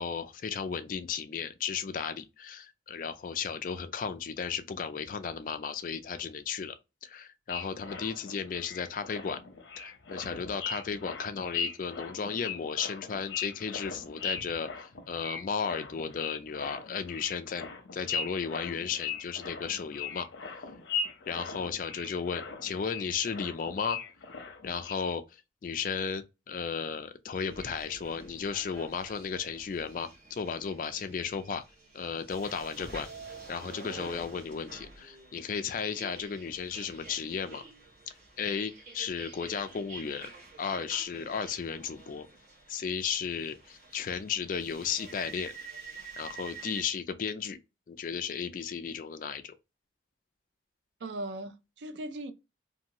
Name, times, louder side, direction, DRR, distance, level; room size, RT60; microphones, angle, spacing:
voice 1, 0.0-6.7 7.0-9.4 9.8-20.3 21.3-24.0 24.6-25.2 25.6-31.6 31.9-33.1 33.5-37.6 38.4-40.3 40.6-42.3 42.7-45.5 46.2-47.6 47.9-49.6, left 6 dB, 45° left, 0.3 m, -34 dB
sound 1, 7.5-24.9, left 5 dB, 80° left, 0.6 m, -39 dB
sound 2, 27.5-46.8, right 3 dB, 40° right, 1.1 m, -48 dB
voice 2, 51.0-52.3, right 1 dB, 70° right, 0.4 m, -38 dB
2.6 x 2.5 x 2.9 m
head